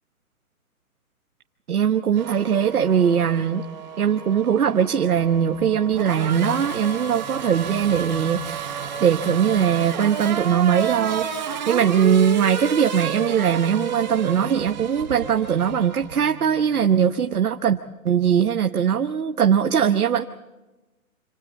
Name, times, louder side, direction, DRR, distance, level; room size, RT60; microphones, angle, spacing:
voice 1, 1.7-3.7 4.0-17.8 18.0-20.2, right 8 dB, 75° right, 6 dB, 1.2 m, -21 dB
Race car auto racing / Accelerating revving vroom, 2.2-17.0, right 7 dB, 30° right, 1.7 m, -32 dB
27.5 x 26.5 x 4.2 m, 1.1 s
hypercardioid pair, 175°, 44 cm